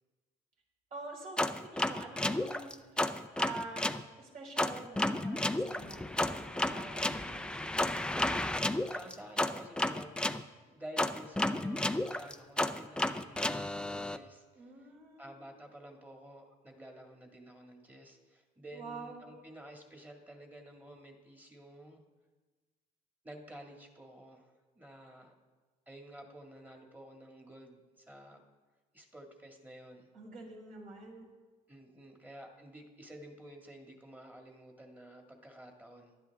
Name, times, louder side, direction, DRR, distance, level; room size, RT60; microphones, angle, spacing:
voice 1, 0.9-8.0 14.5-15.4 18.7-19.3 30.1-31.3, right 3 dB, 55° right, -3 dB, 4.8 m, -47 dB
sound 1, 1.4-4.0 4.6-10.4 11.0-14.2, left 1 dB, 5° left, 0.5 m, -32 dB
voice 2, 8.9-10.1 10.7-14.9 15.2-22.0 23.2-25.3 25.9-28.4 28.9-30.1 31.7-36.1, right 1 dB, 10° right, 2 dB, 1.9 m, -51 dB
17.5 x 11.5 x 3.5 m, 1.3 s
cardioid pair, 110°, 17 cm